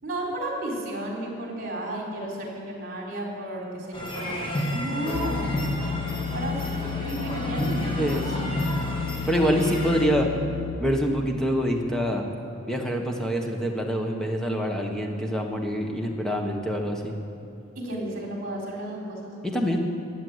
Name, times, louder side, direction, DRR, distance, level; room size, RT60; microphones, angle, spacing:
voice 1, 0.0-5.7 6.3-6.6 7.0-8.0 17.8-19.3, right 1 dB, 50° right, -2 dB, 3.8 m, -33 dB
sound 1, 3.9-10.1, equal, 25° left, 2.1 m, -31 dB
sound 2, 5.1-10.8, left 7 dB, 60° left, 0.5 m, -33 dB
voice 2, 8.0-8.5 9.3-10.3 10.8-12.2 12.7-17.2 19.4-19.8, equal, 5° left, 2 dB, 1.4 m, -25 dB
14.5 x 8.0 x 9.6 m, 2.7 s
head